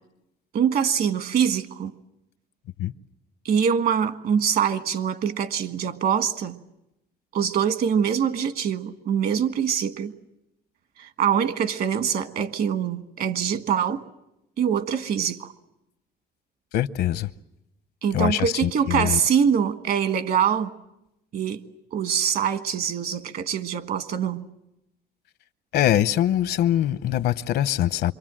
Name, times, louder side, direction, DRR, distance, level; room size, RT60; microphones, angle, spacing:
voice 1, 0.5-1.9 3.4-6.6 7.3-10.1 11.0-14.0 14.6-15.5 18.0-20.7 21.3-24.5, right 8 dB, 60° right, 1.6 m, -24 dB
voice 2, 16.7-17.3 18.1-19.2 25.7-28.1, left 12 dB, 75° left, 0.8 m, -23 dB
26.5 x 24.0 x 7.6 m
cardioid pair, 110°, 17 cm